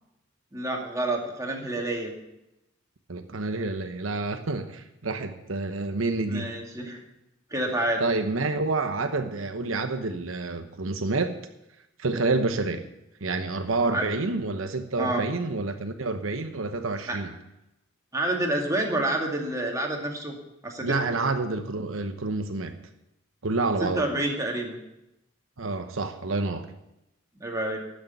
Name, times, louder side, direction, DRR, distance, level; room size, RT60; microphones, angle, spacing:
voice 1, 0.5-2.1 6.3-7.0 7.5-8.1 13.9-14.1 15.0-15.2 17.1-17.2 18.1-20.4 20.6-21.1 23.8-24.8 27.4-27.8, right 1 dB, 15° right, 0 dB, 2.3 m, -28 dB
voice 2, 3.1-6.5 8.0-11.4 12.0-12.8 13.2-17.3 20.8-22.7 23.4-24.1 25.6-26.7, right 3 dB, 90° right, 7 dB, 1.0 m, -28 dB
12.5 x 6.6 x 9.3 m, 0.89 s
head